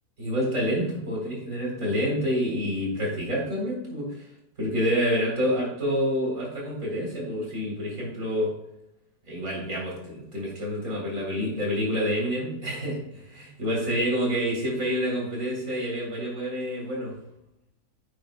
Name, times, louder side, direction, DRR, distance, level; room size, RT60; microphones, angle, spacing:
voice 1, 0.2-4.3 4.6-8.5 9.3-17.2, equal, 55° right, -3 dB, 4.1 m, -28 dB
9.5 x 9.3 x 2.3 m, 0.82 s
omnidirectional pair, 1.7 m